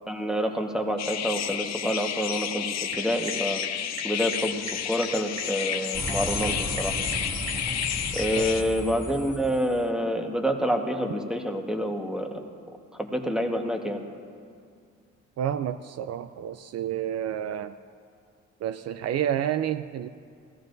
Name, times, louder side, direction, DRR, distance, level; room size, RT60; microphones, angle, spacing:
voice 1, 0.1-2.6 2.9-3.6 4.0-6.9 8.1-12.4 13.0-14.0, equal, ahead, 3 dB, 1.3 m, -27 dB
sound 1, 1.0-8.6, left 9 dB, 60° left, 0.8 m, -31 dB
sound 2, 2.7-8.4, right 4 dB, 90° right, 1.3 m, -44 dB
sound 3, 5.9-9.8, left 1 dB, 15° left, 2.0 m, -34 dB
voice 2, 15.4-17.8 18.6-20.1, right 10 dB, 55° right, 12 dB, 0.4 m, -29 dB
17.5 x 14.0 x 2.6 m, 2.3 s
cardioid pair, 90°, 30 cm